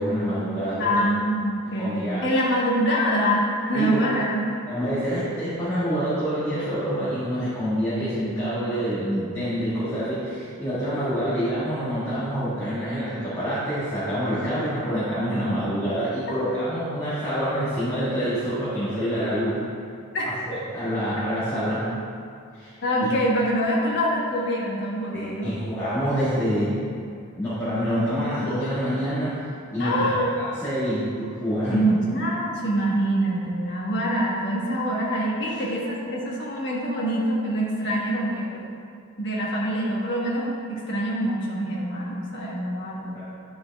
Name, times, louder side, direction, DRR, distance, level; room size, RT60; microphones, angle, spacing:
voice 1, 0.0-1.1 1.8-2.2 3.7-4.0 4.7-19.6 20.2-21.8 22.6-22.7 23.0-23.1 25.1-26.8 27.3-29.4 29.7-30.1 30.4-31.9 35.5-35.6 37.9-38.3 43.1-43.2, equal, 15° left, -14 dB, 1.8 m, -26 dB
voice 2, 0.8-4.4 20.1-20.4 22.8-25.5 29.8-30.4 31.7-38.6 39.2-43.2, equal, 50° left, -5 dB, 1.4 m, -25 dB
10.0 x 4.7 x 3.6 m, 2.4 s
head